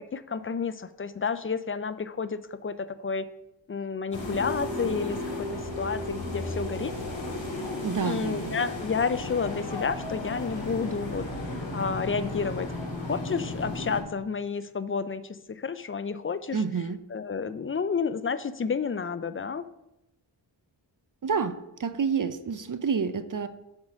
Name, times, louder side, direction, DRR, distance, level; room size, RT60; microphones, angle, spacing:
voice 1, 0.1-3.3 3.7-7.0 8.0-12.7 13.1-16.6 17.1-19.7, left 5 dB, 30° left, 13 dB, 0.4 m, -30 dB
sound 1, 4.1-14.0, left 2 dB, 75° left, 2.8 m, -34 dB
voice 2, 7.8-8.6 16.5-17.0 21.2-23.5, right 6 dB, 45° right, 11 dB, 0.5 m, -29 dB
7.4 x 3.7 x 6.2 m, 0.87 s
wide cardioid pair, 60°, 46 cm